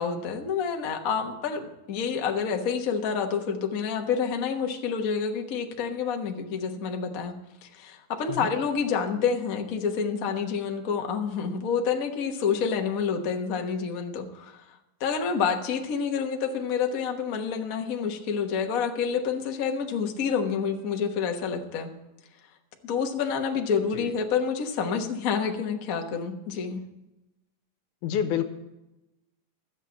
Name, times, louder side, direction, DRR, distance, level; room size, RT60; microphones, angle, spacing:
voice 1, 0.0-7.4 7.6-14.6 15.0-21.9 22.8-26.8, left 6 dB, 65° left, 3 dB, 0.8 m, -28 dB
voice 2, 28.0-28.4, left 9 dB, 85° left, 9 dB, 2.4 m, -28 dB
13.5 x 7.3 x 8.4 m, 0.96 s
omnidirectional pair, 3.5 m